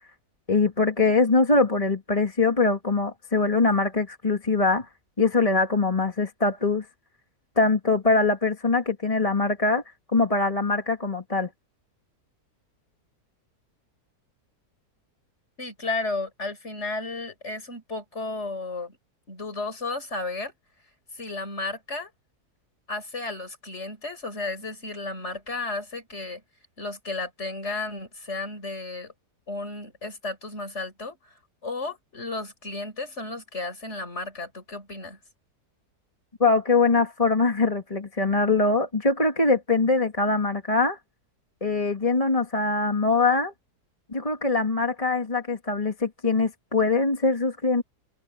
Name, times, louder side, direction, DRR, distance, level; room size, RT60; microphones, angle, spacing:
voice 1, 0.5-4.9 5.2-6.9 7.6-9.8 10.1-11.5 36.4-41.0 41.6-43.5 44.1-47.8, left 3 dB, 20° left, 1.9 m, -23 dB
voice 2, 15.6-19.0 19.3-20.5 21.1-22.1 22.9-26.4 26.8-29.1 29.5-31.3 31.6-35.2, left 3 dB, 40° left, 5.2 m, -33 dB
omnidirectional pair, 1.8 m